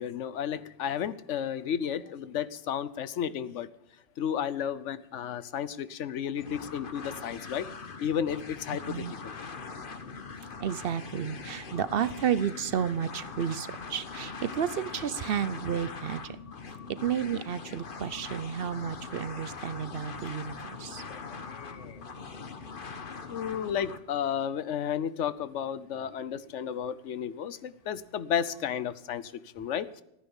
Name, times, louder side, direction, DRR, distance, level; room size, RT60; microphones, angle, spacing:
voice 1, 0.0-3.7 4.2-7.7 8.0-9.3 21.1-22.0 23.3-29.9, left 8 dB, 80° left, 16 dB, 1.1 m, -33 dB
sound 1, 6.4-24.0, left 4 dB, 50° left, 1.3 m, -42 dB
voice 2, 10.6-16.4 17.0-21.0, right 8 dB, 60° right, 15 dB, 0.8 m, -32 dB
15.5 x 9.9 x 7.2 m, 0.83 s
omnidirectional pair, 1.2 m